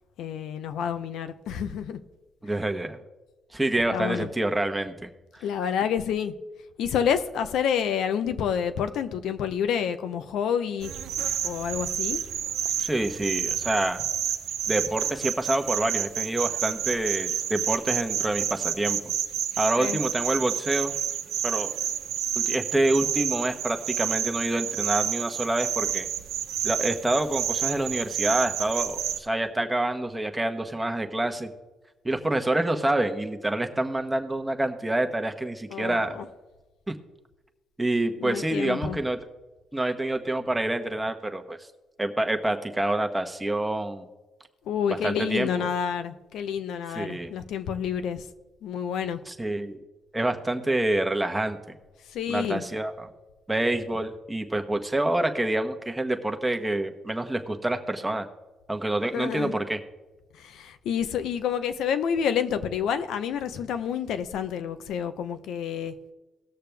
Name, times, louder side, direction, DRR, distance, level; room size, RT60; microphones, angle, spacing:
voice 1, 0.2-2.0 3.9-4.3 5.4-6.3 6.8-10.9 11.4-12.2 19.8-20.0 35.7-36.3 38.2-39.0 44.7-48.3 48.6-49.2 52.1-52.6 59.1-59.5 60.3-66.0, left 8 dB, 80° left, 10 dB, 0.8 m, -28 dB
voice 2, 2.4-3.0 3.5-5.4 12.8-14.0 14.7-19.1 19.6-20.9 21.4-21.7 22.3-26.1 26.6-31.5 32.0-36.2 36.9-37.0 37.8-39.2 39.7-41.6 42.0-44.1 45.0-45.5 46.9-47.3 49.3-49.8 50.1-51.6 52.3-53.1 53.5-58.3 58.7-59.8, right 1 dB, 10° right, 6 dB, 1.1 m, -27 dB
sound 1, 10.8-29.2, right 10 dB, 85° right, 0.7 m, -30 dB
18.0 x 6.7 x 3.4 m, 1.1 s
cardioid pair, 90°, 0 cm